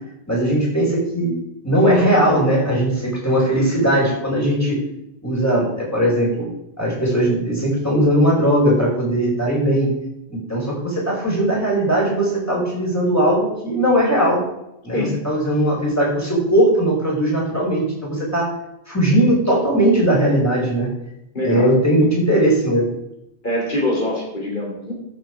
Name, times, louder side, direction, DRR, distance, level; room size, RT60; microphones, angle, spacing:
voice 1, 0.3-1.3 1.6-4.8 5.2-6.5 6.8-9.9 10.3-14.4 14.8-18.6 18.9-20.9 21.4-22.8, right 1 dB, 15° left, -5 dB, 5.1 m, -19 dB
voice 2, 21.3-21.7 23.4-24.9, left 1 dB, 45° left, -2 dB, 3.2 m, -23 dB
13.5 x 7.7 x 4.8 m, 0.83 s
omnidirectional pair, 1.1 m